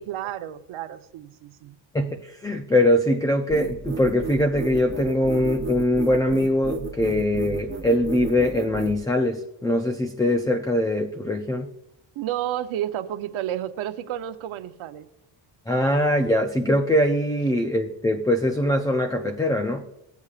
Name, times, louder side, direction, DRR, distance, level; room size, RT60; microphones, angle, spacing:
voice 1, 0.0-1.8 12.2-15.1, right 12 dB, 80° right, 9 dB, 0.9 m, -31 dB
voice 2, 1.9-11.7 15.7-19.8, left 1 dB, 10° left, 4 dB, 0.4 m, -22 dB
sound 1, 3.5-9.0, right 6 dB, 25° right, 0.8 m, -33 dB
17.5 x 8.2 x 2.4 m, 0.86 s
cardioid pair, 135°, 48 cm